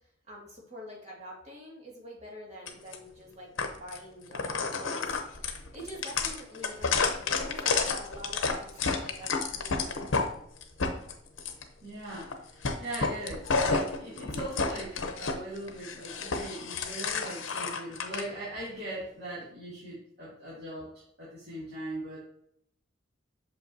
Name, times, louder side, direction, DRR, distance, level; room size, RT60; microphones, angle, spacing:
voice 1, 0.3-3.5 3.8-5.1 5.4-10.0, equal, 35° right, -3 dB, 2.0 m, -45 dB
sound 1, 2.7-3.0 3.6-4.0 4.3-10.3 10.6-11.6 12.1-12.4 12.6-15.3 15.7-18.2, left 4 dB, 80° left, 0.8 m, -30 dB
voice 2, 11.8-22.2, right 1 dB, 50° right, -10 dB, 2.5 m, -40 dB
6.7 x 5.4 x 2.7 m, 0.70 s
head